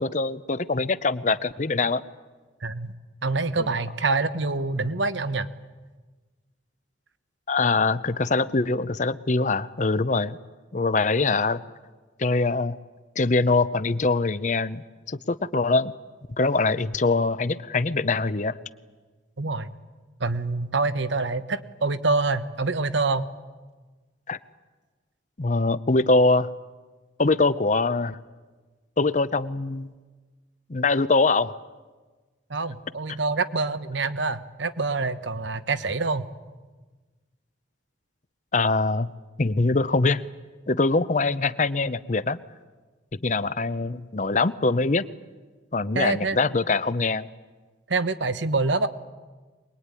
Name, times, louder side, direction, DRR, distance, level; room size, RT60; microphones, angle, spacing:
voice 1, 0.0-2.0 3.6-3.7 7.5-10.4 10.7-11.6 12.2-12.8 13.2-15.9 16.4-18.6 24.3-24.4 25.4-26.5 27.2-28.2 29.0-29.9 30.7-31.5 38.5-39.1 39.4-40.2 40.7-42.4 43.2-45.1 45.7-47.3, left 3 dB, 40° left, 15 dB, 0.7 m, -23 dB
voice 2, 2.6-2.9 3.2-5.5 19.4-19.7 20.2-23.3 32.5-36.3 45.9-46.4 47.9-48.9, right 3 dB, 80° right, 11 dB, 1.2 m, -26 dB
24.0 x 20.5 x 9.8 m, 1.3 s
head